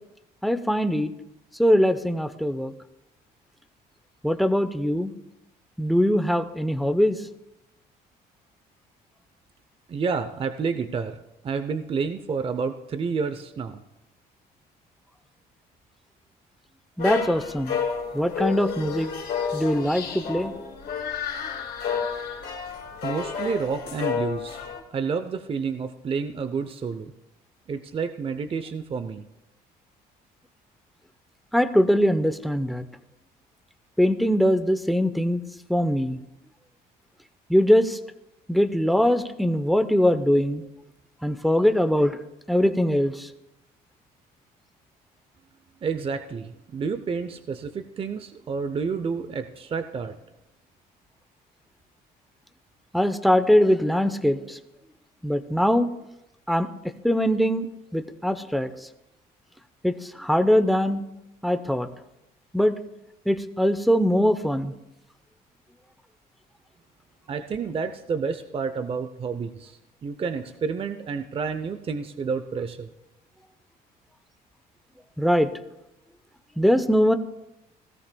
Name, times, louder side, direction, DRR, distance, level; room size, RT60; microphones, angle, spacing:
voice 1, 0.4-1.1 1.6-2.7 4.2-5.1 5.8-7.2 17.0-17.8 18.1-19.1 19.5-20.5 31.5-32.8 34.0-35.4 35.7-36.2 37.5-38.0 38.5-40.6 41.2-42.2 42.5-43.3 52.9-54.6 55.2-55.9 56.5-56.7 57.0-57.7 57.9-58.7 59.8-61.0 61.4-61.9 62.5-62.7 63.3-64.7 75.2-75.5 76.6-77.2, equal, ahead, 9 dB, 0.8 m, -22 dB
voice 2, 9.9-11.2 11.4-13.8 23.0-24.6 24.9-27.1 27.7-29.2 45.8-50.1 67.3-72.9, right 5 dB, 35° right, 9 dB, 0.7 m, -29 dB
sound 1, 17.0-24.8, left 6 dB, 65° left, 3.0 m, -31 dB
17.0 x 14.5 x 2.3 m, 0.90 s
cardioid pair, 110°, 17 cm